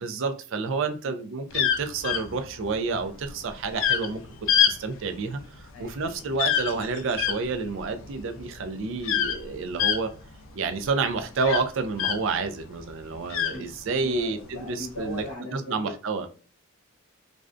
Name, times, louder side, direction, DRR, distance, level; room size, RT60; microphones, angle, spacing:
voice 1, 0.0-4.2 4.7-5.4 5.9-10.1 10.6-15.2 15.5-16.3, right 4 dB, 60° right, 8 dB, 0.4 m, -29 dB
sound 1, 1.5-12.5 12.8-14.2 14.9-15.2, left 9 dB, 60° left, 0.4 m, -27 dB
voice 2, 5.7-6.2 13.5-13.7 14.0-15.9 16.2-16.3, left 2 dB, 90° left, -1 dB, 0.8 m, -39 dB
2.4 x 2.1 x 2.4 m, 0.37 s
head